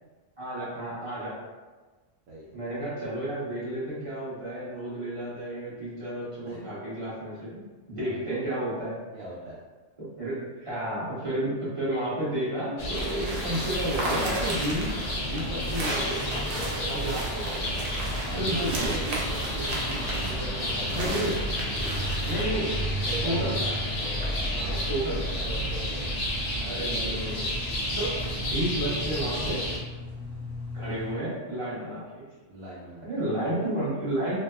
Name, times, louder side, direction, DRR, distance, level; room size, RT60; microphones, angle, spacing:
voice 1, 0.4-1.4 2.5-7.6 7.9-9.0 10.0-14.9 15.3-16.4 16.9-17.4 18.4-18.9 20.9-21.3 22.2-22.7 23.2-23.6 24.5-25.2 26.6-28.2 28.5-29.7 30.7-32.0 33.0-34.4, right 1 dB, 30° right, -10 dB, 0.9 m, -31 dB
voice 2, 2.3-2.6 6.5-6.6 8.0-8.2 9.1-9.6 16.7-17.2 17.8-21.4 23.1-26.0 32.5-33.1, right 1 dB, 85° right, -9 dB, 0.9 m, -40 dB
sound 1, 12.8-29.8, equal, 65° left, 0.7 m, -31 dB
sound 2, 12.9-22.4, right 1 dB, 60° right, 0.7 m, -35 dB
sound 3, 14.0-31.1, left 3 dB, 35° left, 0.6 m, -43 dB
2.9 x 2.0 x 2.3 m, 1.3 s
omnidirectional pair, 1.2 m